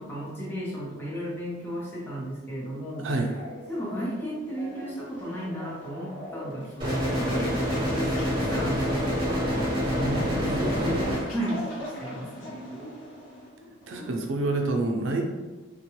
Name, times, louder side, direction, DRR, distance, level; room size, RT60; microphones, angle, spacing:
voice 1, 0.0-3.1 3.7-11.7 12.0-12.6, equal, 10° left, -6 dB, 0.7 m, -34 dB
sound 1, 3.4-14.1, left 1 dB, 75° left, 1.0 m, -42 dB
sound 2, 6.8-11.2, equal, 20° right, 0.8 m, -27 dB
voice 2, 9.9-11.2 13.9-15.2, right 2 dB, 65° right, 2 dB, 0.4 m, -29 dB
3.4 x 2.2 x 2.9 m, 1.2 s
head